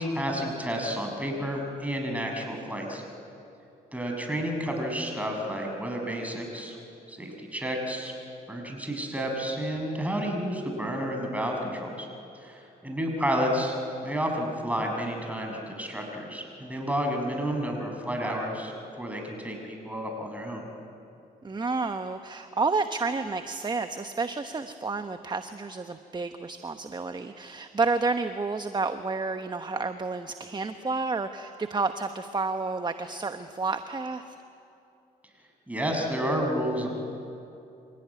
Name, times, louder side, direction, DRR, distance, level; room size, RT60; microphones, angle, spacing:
voice 1, 0.0-3.0 3.9-6.8 7.1-8.1 8.5-12.1 12.4-13.8 14.0-18.7 19.0-20.7 35.7-37.0, equal, 10° right, 2 dB, 6.4 m, -30 dB
voice 2, 21.4-34.4, right 3 dB, 25° right, 9 dB, 1.1 m, -30 dB
26.5 x 17.0 x 9.7 m, 2.7 s
supercardioid pair, 60°, 17 cm